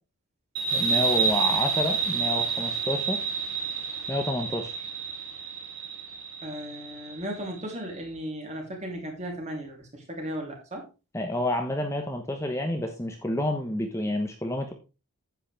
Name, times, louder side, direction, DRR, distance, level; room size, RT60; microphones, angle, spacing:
sound 1, 0.6-7.8, right 5 dB, 65° right, 3.2 m, -29 dB
voice 1, 0.7-3.2 4.1-4.8 11.1-14.7, left 1 dB, 15° left, 4 dB, 1.1 m, -29 dB
voice 2, 6.4-10.8, equal, 30° right, 1 dB, 3.3 m, -36 dB
9.8 x 8.6 x 3.4 m, 0.30 s
head